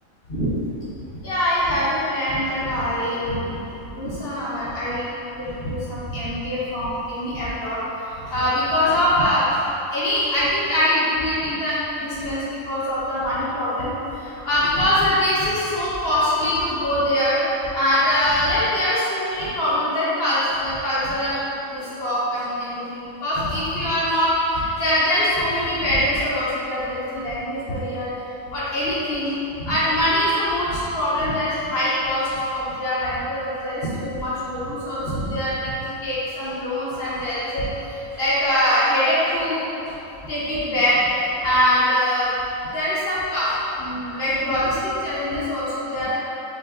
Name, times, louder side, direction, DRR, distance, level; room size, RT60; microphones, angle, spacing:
voice 1, 1.2-7.8 8.2-9.6 9.9-13.9 14.2-17.4 17.7-28.1 28.5-29.3 29.6-39.9 40.2-42.3 42.6-46.1, left 1 dB, 50° left, -10 dB, 1.1 m, -23 dB
5.5 x 2.5 x 3.7 m, 2.9 s
omnidirectional pair, 1.4 m